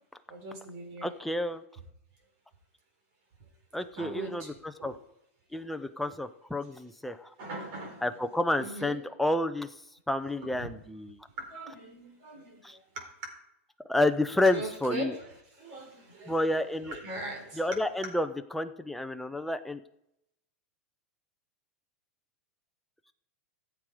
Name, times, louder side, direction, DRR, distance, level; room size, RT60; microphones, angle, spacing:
voice 1, 0.3-1.1 4.0-4.5 4.8-4.9 5.5-5.6 6.0-6.1 7.4-9.0 10.4-10.7 11.4-13.1 14.5-17.6, right 2 dB, 45° right, 4.3 m, -41 dB
voice 2, 1.0-1.6 3.7-4.9 5.5-7.3 8.0-9.7 10.1-11.3 12.6-12.8 13.9-15.1 16.3-17.0 17.6-19.8, left 1 dB, ahead, 0.6 m, -30 dB
14.5 x 7.7 x 5.0 m
supercardioid pair, 140°, 7 cm